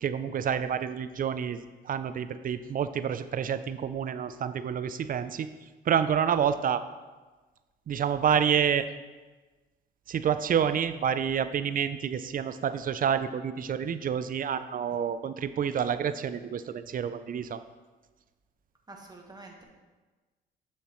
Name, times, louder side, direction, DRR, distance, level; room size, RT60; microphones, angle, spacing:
voice 1, 0.0-5.5 5.9-6.8 7.9-8.9 10.1-17.6, right 8 dB, 45° right, 12 dB, 0.4 m, -28 dB
voice 2, 18.9-19.6, right 2 dB, 20° right, 0 dB, 1.4 m, -47 dB
7.4 x 6.9 x 3.1 m, 1.3 s
cardioid pair, 90°, 20 cm